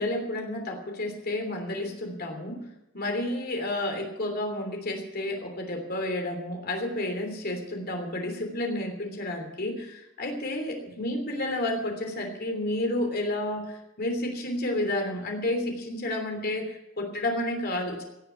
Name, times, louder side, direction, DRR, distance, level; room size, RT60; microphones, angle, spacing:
voice 1, 0.0-2.6 2.9-13.7 14.0-18.0, left 1 dB, 45° left, 3 dB, 3.1 m, -31 dB
17.0 x 6.9 x 9.5 m, 0.89 s
head